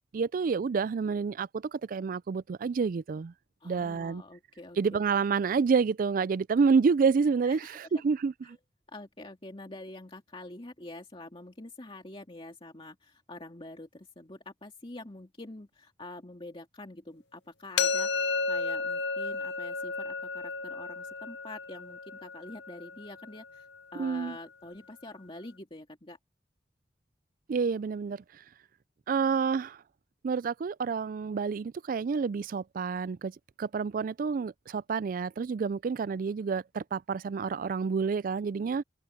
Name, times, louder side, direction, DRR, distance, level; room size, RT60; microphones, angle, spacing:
voice 1, 0.1-3.3 3.6-4.2 4.8-8.3 24.0-24.4 27.5-28.2 29.1-29.8 30.2-33.3 33.6-38.8, right 5 dB, 50° right, 0.3 m, -28 dB
voice 2, 3.6-5.0 7.5-7.8 8.9-26.2, left 2 dB, 30° left, 2.4 m, -46 dB
sound 1, 17.8-23.6, left 4 dB, 70° left, 0.8 m, -33 dB
open air
head